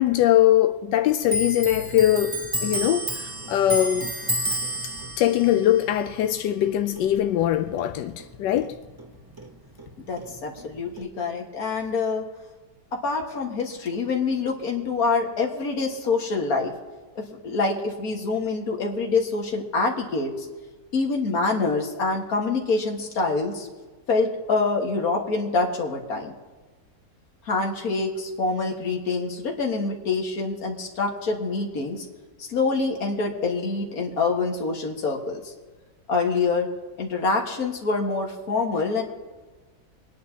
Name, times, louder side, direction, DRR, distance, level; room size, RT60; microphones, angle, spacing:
voice 1, 0.0-4.1 5.2-8.7, left 12 dB, 90° left, 1.2 m, -22 dB
Clock, 1.3-8.3 8.6-9.9 10.2-11.0, equal, 35° right, 0.3 m, -31 dB
voice 2, 10.0-12.2 13.0-16.7 17.2-20.5 20.9-23.7 24.1-26.3 27.5-32.0 32.4-35.5 36.1-36.7 37.0-39.0, left 4 dB, 60° left, 2.0 m, -26 dB
25.5 x 10.5 x 2.8 m
omnidirectional pair, 1.8 m